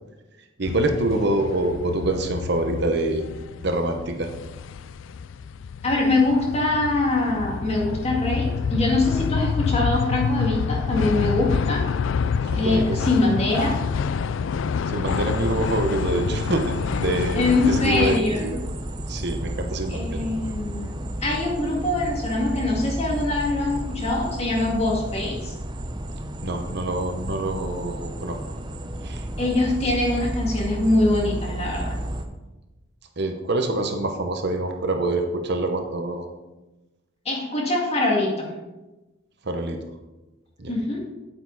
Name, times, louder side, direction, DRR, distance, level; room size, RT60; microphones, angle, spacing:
sound 1, 0.6-18.2, left 6 dB, 70° left, 0.3 m, -27 dB
voice 1, 0.6-3.2 3.6-4.3 12.5-13.0 14.9-18.6 19.1-20.2 26.4-28.4 29.0-29.2 33.2-36.2 39.4-39.8 40.6-40.7, right 2 dB, 55° right, 5 dB, 1.0 m, -26 dB
voice 2, 5.8-11.8 12.5-13.8 17.3-18.5 19.9-20.9 21.2-25.5 29.4-32.0 37.3-38.5 40.7-41.0, left 2 dB, 30° left, -2 dB, 2.1 m, -23 dB
sound 2, 15.1-32.3, right 1 dB, 20° right, 0.7 m, -32 dB
9.0 x 8.5 x 4.0 m, 1.1 s
head